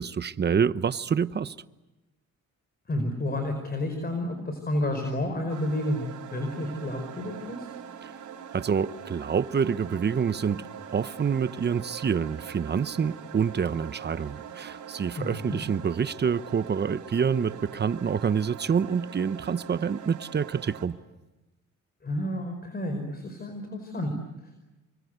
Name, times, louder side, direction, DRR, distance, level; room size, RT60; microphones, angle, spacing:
voice 1, 0.0-1.5 8.0-8.1 8.5-10.6 10.9-21.0, right 6 dB, 35° right, 1.0 m, -27 dB
voice 2, 2.9-6.0 6.3-7.7 15.2-15.6 22.0-24.1, left 1 dB, 30° left, 5.0 m, -30 dB
sound 1, 5.5-20.9, right 8 dB, 75° right, 4.5 m, -43 dB
28.5 x 24.5 x 8.2 m
cardioid pair, 90°, 30 cm